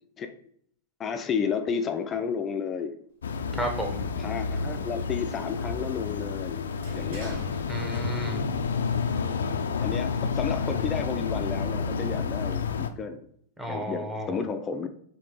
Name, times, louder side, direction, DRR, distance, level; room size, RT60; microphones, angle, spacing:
voice 1, 1.0-3.0 4.2-6.7 6.9-7.4 9.8-13.3 13.7-14.9, left 6 dB, 25° left, 0.4 m, -32 dB
sound 1, 3.2-12.9, left 5 dB, 85° left, 0.4 m, -30 dB
voice 2, 3.5-4.1 7.7-8.4 13.6-14.4, equal, 5° right, 1.1 m, -32 dB
Sliding door, 3.6-8.4 8.7-9.7, right 2 dB, 70° right, 1.3 m, -46 dB
4.9 x 3.2 x 3.3 m
hypercardioid pair, 110°, 0 cm